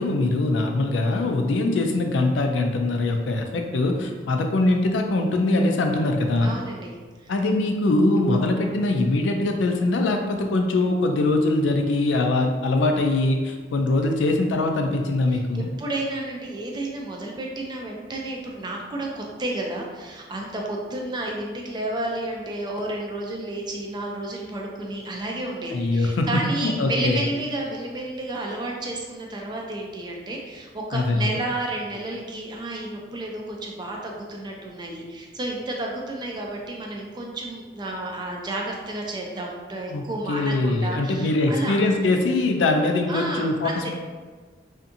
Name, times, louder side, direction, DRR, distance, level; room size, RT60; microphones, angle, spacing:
voice 1, 0.0-6.5 7.3-15.7 25.7-26.3 26.6-27.2 30.9-31.4 39.9-43.9, left 2 dB, 90° left, 3 dB, 0.4 m, -22 dB
voice 2, 6.4-6.9 7.2-7.3 15.3-41.8 43.1-43.9, right 2 dB, 25° right, 0 dB, 0.4 m, -31 dB
2.6 x 2.5 x 2.5 m, 1.4 s
head